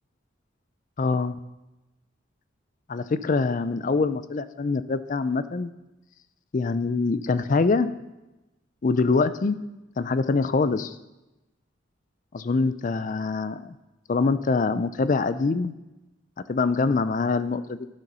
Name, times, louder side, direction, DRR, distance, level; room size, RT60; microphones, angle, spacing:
voice 1, 1.0-1.3 2.9-5.7 6.5-7.9 8.8-9.6 10.0-11.0 12.3-13.7 14.1-15.7 16.5-17.9, left 4 dB, 40° left, 13 dB, 0.4 m, -24 dB
12.0 x 7.9 x 5.5 m, 1.0 s
head